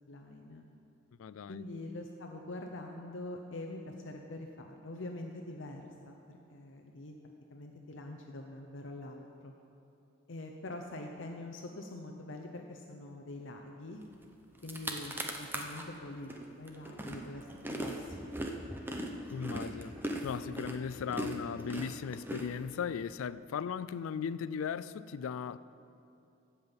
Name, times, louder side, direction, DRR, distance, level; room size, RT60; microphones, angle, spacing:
voice 1, 0.1-0.6 1.5-7.1 7.5-9.5 10.3-14.0 14.6-16.3 16.6-18.3, left 2 dB, 60° left, 0.8 m, -44 dB
voice 2, 1.2-1.6 19.3-19.9 20.2-25.6, left 6 dB, 90° left, 0.4 m, -37 dB
sound 1, 14.2-14.3 14.6-15.8 16.3-23.0, right 1 dB, 10° right, 0.8 m, -39 dB
15.5 x 5.7 x 7.0 m
head